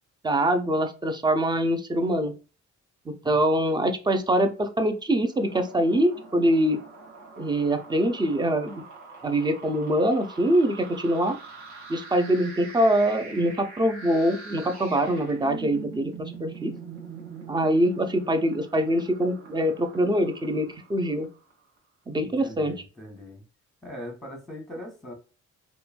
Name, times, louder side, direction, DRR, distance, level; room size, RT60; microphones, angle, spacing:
voice 1, 0.2-2.3 3.1-6.8 7.4-8.8 9.2-11.4 11.9-16.7 17.5-21.3 22.1-22.7, right 1 dB, 15° right, 7 dB, 0.4 m, -24 dB
sound 1, 5.2-21.5, right 5 dB, 65° right, 1.0 m, -43 dB
voice 2, 22.2-23.4 23.8-25.1, equal, ahead, 2 dB, 1.0 m, -41 dB
3.0 x 2.2 x 2.4 m, 0.34 s
cardioid pair, 90°, 30 cm